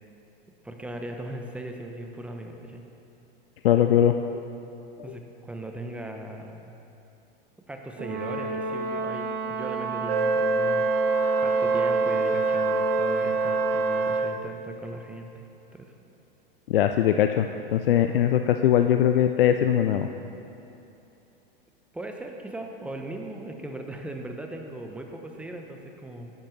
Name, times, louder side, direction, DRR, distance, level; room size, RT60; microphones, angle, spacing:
voice 1, 0.6-2.8 5.0-6.7 7.7-10.9 11.4-15.5 15.7-15.9 21.9-26.3, right 1 dB, 5° right, 3 dB, 0.8 m, -38 dB
voice 2, 3.6-4.4 5.1-5.2 16.7-17.5 17.7-20.1, left 10 dB, 75° left, 7 dB, 0.5 m, -21 dB
Brass instrument, 8.0-14.4, right 3 dB, 35° right, 1.8 m, -31 dB
Wind instrument woodwind instrument, 10.1-14.4, right 3 dB, 75° right, 0.6 m, -25 dB
11.0 x 10.0 x 3.2 m, 2.8 s
hypercardioid pair, 100°, 29 cm